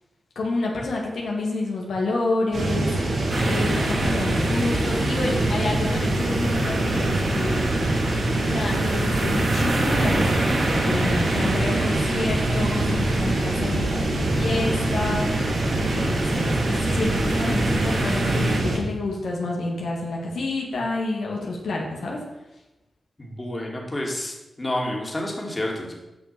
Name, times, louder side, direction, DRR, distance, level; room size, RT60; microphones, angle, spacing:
voice 1, 0.4-2.9 3.4-7.9 8.5-15.5 15.7-22.2, left 2 dB, 85° left, -2 dB, 2.3 m, -29 dB
sound 1, 2.5-18.8, right 1 dB, 75° right, 3.4 m, -24 dB
sound 2, 3.3-18.6, right 2 dB, 55° right, 2.7 m, -30 dB
voice 2, 23.2-25.9, left 1 dB, 25° left, -1 dB, 2.7 m, -29 dB
9.8 x 6.1 x 6.1 m, 0.99 s
cardioid pair, 65°, 0 cm